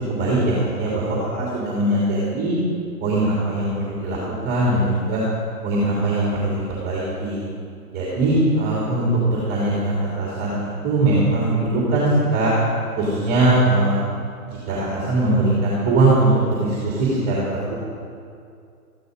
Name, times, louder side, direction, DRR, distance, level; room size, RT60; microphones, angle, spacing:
voice 1, 0.0-2.6 3.0-4.2 4.4-5.2 5.6-7.4 7.9-12.5 13.0-14.0 14.5-17.9, right 2 dB, 20° right, -5 dB, 3.0 m, -21 dB
14.0 x 11.5 x 5.2 m, 2.4 s
hypercardioid pair, 135°, 46 cm